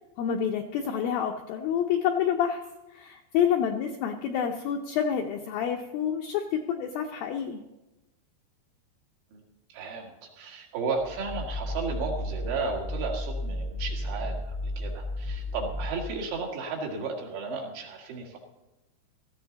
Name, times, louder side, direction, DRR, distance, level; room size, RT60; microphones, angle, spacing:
voice 1, 0.2-2.6 2.9-7.6, left 8 dB, 85° left, 3 dB, 2.1 m, -28 dB
voice 2, 9.7-18.4, right 4 dB, 80° right, -1 dB, 4.5 m, -34 dB
sound 1, 11.0-16.4, left 1 dB, ahead, 2.0 m, -34 dB
16.5 x 14.0 x 4.0 m, 1.0 s
omnidirectional pair, 5.2 m